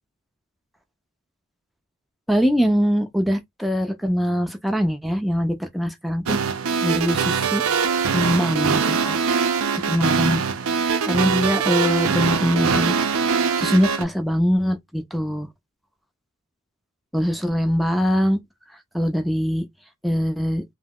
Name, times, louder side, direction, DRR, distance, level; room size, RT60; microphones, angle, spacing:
voice 1, 2.3-6.4 6.8-7.6 8.1-9.2 9.9-10.4 11.1-12.9 13.3-15.5 17.1-18.4 18.9-19.6 20.0-20.6, equal, ahead, 0.5 m, -22 dB
sound 1, 6.3-14.0, right 6 dB, 90° right, 0.5 m, -22 dB
2.8 x 2.1 x 3.5 m
head